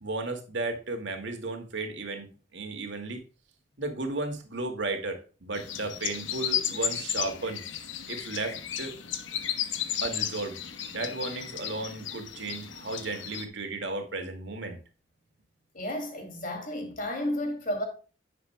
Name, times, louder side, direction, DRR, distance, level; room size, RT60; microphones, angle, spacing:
voice 1, 0.0-3.2 3.8-7.6 8.1-8.9 10.0-10.5 10.9-14.8, right 3 dB, 65° right, 2.2 m, -34 dB
sound 1, 5.5-13.5, left 9 dB, 80° left, 1.1 m, -34 dB
voice 2, 15.7-17.8, left 1 dB, 45° left, 2.6 m, -32 dB
10.5 x 8.4 x 2.2 m
head